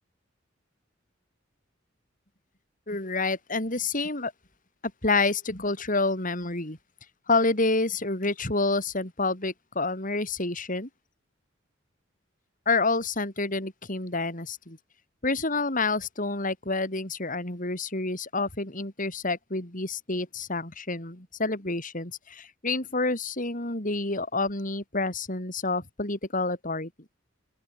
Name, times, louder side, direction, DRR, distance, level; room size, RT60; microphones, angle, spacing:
voice 1, 2.9-4.3 5.0-6.8 7.3-10.9 12.7-14.8 15.2-26.9, left 3 dB, 45° left, 5.6 m, -28 dB
open air
head